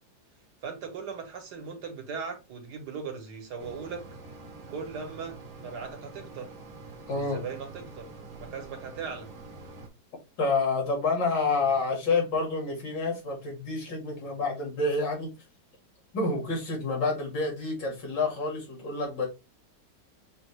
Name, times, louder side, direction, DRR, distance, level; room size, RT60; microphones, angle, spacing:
voice 1, 0.6-4.2 4.7-6.5 7.1-8.1 8.4-9.3, right 5 dB, 65° right, 1.7 m, -39 dB
Mechanisms, 3.6-9.9, right 3 dB, 45° right, 1.2 m, -46 dB
voice 2, 7.1-7.4 10.4-15.3 16.1-19.3, left 3 dB, 75° left, 2.6 m, -28 dB
6.4 x 2.5 x 3.0 m
omnidirectional pair, 1.9 m